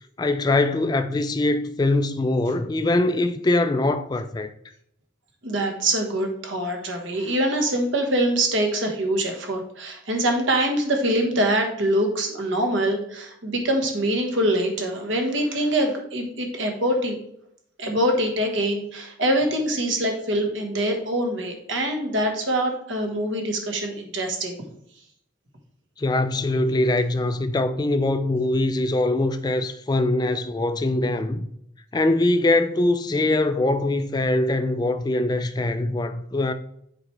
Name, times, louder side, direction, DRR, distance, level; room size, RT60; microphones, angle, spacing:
voice 1, 0.2-4.5 26.0-31.5 31.9-36.5, left 2 dB, 20° left, 0.3 m, -22 dB
voice 2, 5.4-17.2 17.8-24.6, right 1 dB, 70° right, 1.4 m, -24 dB
7.6 x 4.7 x 3.3 m
head